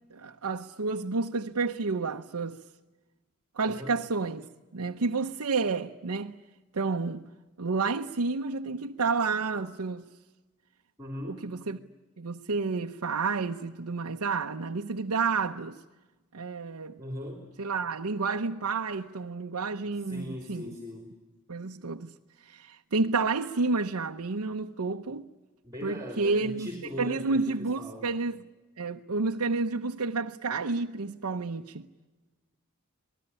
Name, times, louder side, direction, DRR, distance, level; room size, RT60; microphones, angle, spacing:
voice 1, 0.1-2.6 3.6-6.4 6.7-7.3 7.6-10.1 11.3-11.8 12.2-15.8 16.3-17.0 17.6-20.7 21.5-22.1 22.4-25.3 25.8-26.7 27.0-28.4 28.8-31.9, right 4 dB, 90° right, 0.8 m, -30 dB
voice 2, 3.7-4.0 11.0-11.4 17.0-17.5 19.9-21.1 25.6-28.1, left 1 dB, 15° right, 3.3 m, -40 dB
26.5 x 20.0 x 9.9 m
head